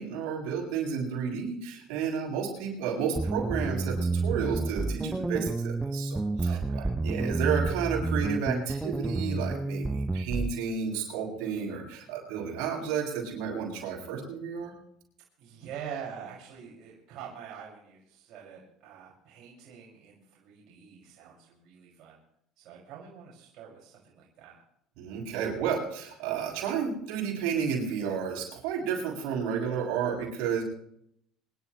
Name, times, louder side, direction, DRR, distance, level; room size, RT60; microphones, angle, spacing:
voice 1, 0.0-6.6 7.0-14.7 25.0-30.6, right 7 dB, 75° right, -1 dB, 7.9 m, -31 dB
sound 1, 3.2-10.5, right 3 dB, 10° right, 0.5 m, -30 dB
voice 2, 6.4-6.9 15.4-22.2 22.6-24.6, right 8 dB, 60° right, -4 dB, 6.3 m, -45 dB
27.5 x 12.5 x 3.3 m, 0.71 s
supercardioid pair, 115°, 0 cm